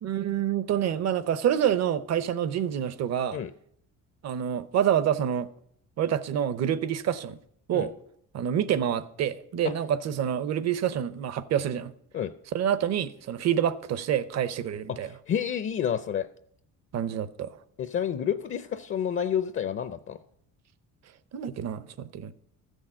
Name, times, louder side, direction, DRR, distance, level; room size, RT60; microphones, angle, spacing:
voice 1, 0.0-3.4 4.2-5.5 6.0-7.4 7.7-7.9 8.3-11.9 12.5-15.1 16.9-17.6 21.3-22.3, right 9 dB, 50° right, 0.8 m, -27 dB
voice 2, 15.3-16.3 17.8-20.2, left 9 dB, 35° left, 0.6 m, -29 dB
14.0 x 6.4 x 7.4 m
cardioid pair, 145°, 34 cm